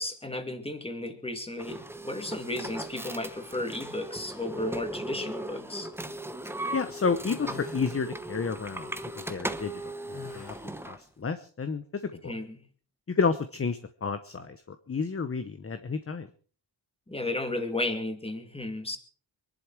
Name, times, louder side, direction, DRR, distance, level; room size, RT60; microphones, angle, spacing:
voice 1, 0.0-5.9 12.2-12.6 17.1-19.0, left 2 dB, 10° left, 7 dB, 2.3 m, -34 dB
sound 1, 1.6-11.0, right 1 dB, 5° right, 1.0 m, -38 dB
voice 2, 6.7-8.9 9.3-9.8 10.1-10.5 10.9-11.8 12.2-12.3 13.2-14.6 14.9-16.3, left 5 dB, 30° left, 10 dB, 1.0 m, -30 dB
sound 2, 7.3-7.9 10.1-10.8, left 6 dB, 55° left, 2.5 m, -45 dB
23.5 x 11.5 x 4.6 m, 0.42 s
wide cardioid pair, 115°, 45 cm